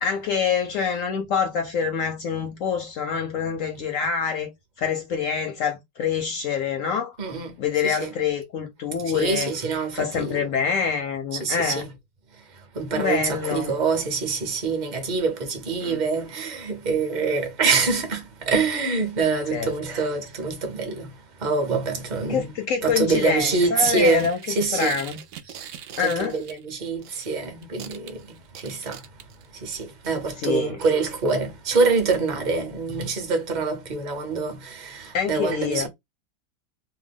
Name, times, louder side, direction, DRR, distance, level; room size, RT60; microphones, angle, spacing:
voice 1, 0.0-4.5 4.8-7.2 7.6-9.5 10.0-11.8 12.9-13.7 15.8-16.0 19.5-19.7 22.3-24.4 24.7-25.2 26.0-26.4 30.4-30.8 35.1-35.9, left 6 dB, 70° left, 0.8 m, -26 dB
voice 2, 7.2-7.5 7.8-8.1 9.1-10.5 11.3-11.9 12.7-21.1 21.4-22.5 22.8-25.0 26.0-29.0 29.6-35.9, right 4 dB, 35° right, 0.7 m, -25 dB
sound 1, 23.8-27.4 27.6-29.6 30.0-30.3 30.8-30.9 31.2-31.3, right 9 dB, 75° right, 0.7 m, -40 dB
2.9 x 2.2 x 3.4 m
omnidirectional pair, 1.8 m